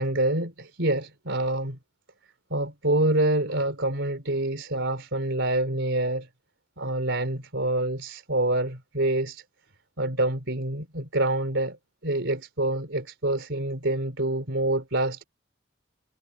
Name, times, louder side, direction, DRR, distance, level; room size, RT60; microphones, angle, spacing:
voice 1, 0.0-1.8 2.5-6.3 6.8-9.4 10.0-11.8 12.0-15.2, right 1 dB, 65° right, 3.8 m, -26 dB
head